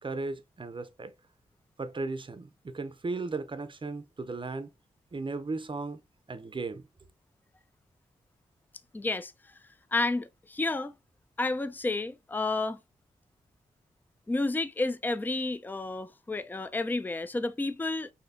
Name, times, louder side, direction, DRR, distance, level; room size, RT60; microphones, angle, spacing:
voice 1, 0.0-1.1 1.8-4.7 5.1-6.0 6.3-6.9, right 3 dB, 35° right, 0.6 m, -36 dB
voice 2, 8.9-9.3 9.9-10.9 11.4-12.8 14.3-18.1, left 2 dB, 10° left, 0.4 m, -31 dB
4.2 x 2.7 x 2.7 m
cardioid pair, 55°, 15 cm